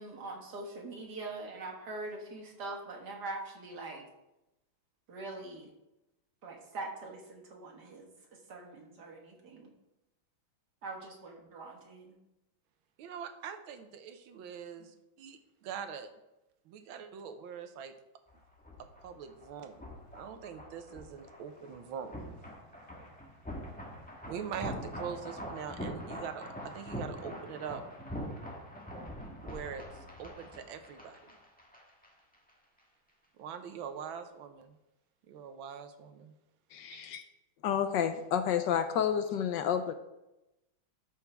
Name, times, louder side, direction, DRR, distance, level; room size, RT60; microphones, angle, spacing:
voice 1, 0.0-4.1 5.1-5.7 6.4-8.1 8.5-9.7 10.8-12.2, right 2 dB, 55° right, 0 dB, 2.1 m, -43 dB
voice 2, 13.0-16.1 16.6-17.9 18.8-19.8 20.1-22.1 24.3-27.8 29.4-31.3 33.4-34.8 35.3-36.3 36.9-37.0, right 7 dB, 85° right, 8 dB, 1.6 m, -43 dB
sound 1, 18.3-32.1 32.3-32.5, equal, 5° left, 1.1 m, -44 dB
voice 3, 36.7-37.2 37.6-39.9, left 8 dB, 75° left, 9 dB, 1.2 m, -30 dB
12.5 x 6.1 x 3.4 m, 0.93 s
omnidirectional pair, 2.2 m